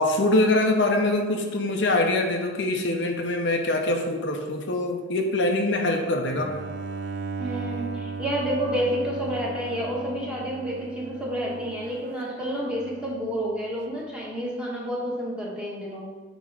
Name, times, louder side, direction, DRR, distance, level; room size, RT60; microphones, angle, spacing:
voice 1, 0.0-6.5, left 2 dB, 70° left, 3 dB, 0.7 m, -24 dB
Bowed string instrument, 6.3-13.3, right 4 dB, 55° right, 0.4 m, -36 dB
voice 2, 7.4-16.0, equal, 5° right, -5 dB, 1.3 m, -29 dB
8.3 x 3.1 x 4.7 m, 1.4 s
head